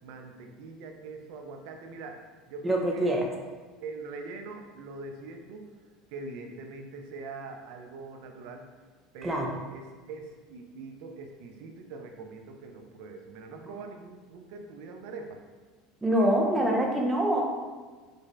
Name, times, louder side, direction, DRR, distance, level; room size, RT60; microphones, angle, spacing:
voice 1, 0.0-3.1 3.8-5.7 6.1-8.7 9.1-15.4, right 3 dB, 70° right, 3 dB, 0.5 m, -43 dB
voice 2, 2.6-3.3 9.2-9.5 16.0-17.4, right 1 dB, 15° right, 0 dB, 0.7 m, -25 dB
4.8 x 2.6 x 2.2 m, 1.4 s
supercardioid pair, 95°, 0 cm